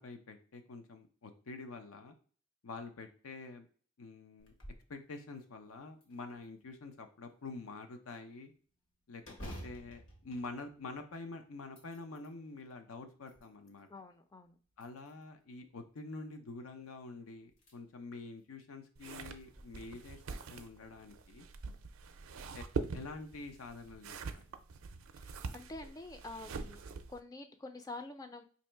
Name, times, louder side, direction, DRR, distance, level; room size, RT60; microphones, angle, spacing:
voice 1, 0.0-2.2 2.6-3.7 4.0-4.5 4.9-8.5 9.1-13.9 14.8-20.2 20.5-21.5 22.5-22.6 22.9-24.4, left 3 dB, 90° left, 6 dB, 0.6 m, -47 dB
sound 1, 4.4-4.9 5.4-5.5 6.0-6.8 9.2-11.2 11.6-12.4 13.0-13.8 14.7-15.4 16.9-17.0 17.5-17.7 18.2-18.3 19.4-19.6, equal, 65° left, 1.2 m, -51 dB
voice 2, 13.9-14.6 25.2-26.8 27.1-28.4, left 2 dB, 15° left, 7 dB, 0.3 m, -47 dB
sound 2, 19.0-27.2, right 4 dB, 75° right, 0.4 m, -44 dB
3.0 x 2.7 x 4.4 m, 0.42 s
head